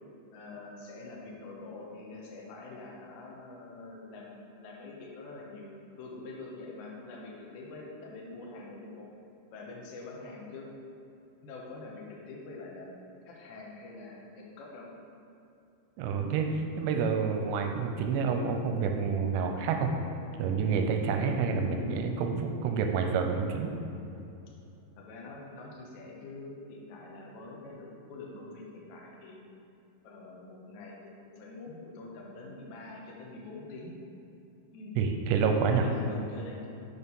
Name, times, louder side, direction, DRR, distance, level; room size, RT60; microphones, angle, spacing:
voice 1, 0.3-9.1 9.5-10.7 11.4-12.9 13.3-14.9 16.1-16.4 21.4-22.2 25.0-29.4 30.0-33.9 34.7-35.0 35.6-36.7, left 3 dB, 75° left, -2 dB, 1.8 m, -45 dB
voice 2, 16.0-16.5 16.8-19.9 20.4-23.7 35.0-35.9, right 5 dB, 85° right, 4 dB, 2.6 m, -28 dB
6.5 x 4.4 x 5.3 m, 2.8 s
omnidirectional pair, 4.7 m